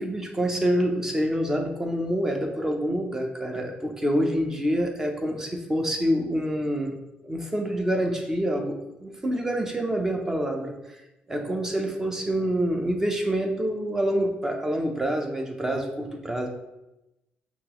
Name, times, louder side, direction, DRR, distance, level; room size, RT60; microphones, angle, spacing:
voice 1, 0.0-7.0 7.2-11.0 11.3-16.5, equal, 15° right, 3 dB, 0.6 m, -27 dB
5.8 x 2.9 x 3.0 m, 0.93 s
cardioid pair, 150°, 3 cm